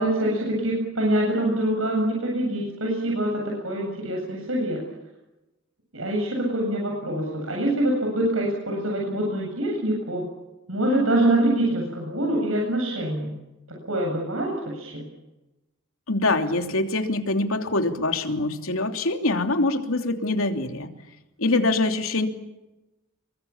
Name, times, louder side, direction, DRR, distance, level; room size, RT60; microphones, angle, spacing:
voice 1, 0.0-4.8 5.9-10.2 10.7-13.4 13.8-15.1, right 1 dB, 75° right, -1 dB, 8.0 m, -25 dB
voice 2, 16.1-20.9 21.4-22.3, left 2 dB, 85° left, 5 dB, 3.1 m, -24 dB
29.0 x 24.0 x 7.3 m, 1.0 s
head